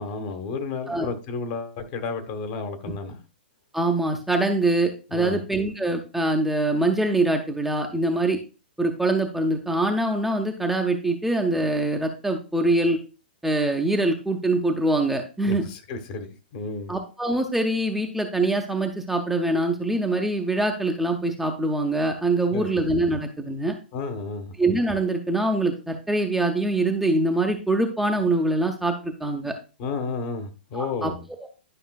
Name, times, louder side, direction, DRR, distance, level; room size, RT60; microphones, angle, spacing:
voice 1, 0.0-3.2 5.1-5.4 15.4-16.9 22.5-22.7 23.9-24.5 29.8-31.3, left 4 dB, 40° left, 1.3 m, -32 dB
voice 2, 3.7-8.4 8.8-13.0 13.4-15.7 16.9-23.7 24.6-29.5 30.7-31.1, right 2 dB, 5° right, 0.8 m, -24 dB
11.5 x 5.4 x 2.4 m
figure-of-eight pair, 110°, 6 cm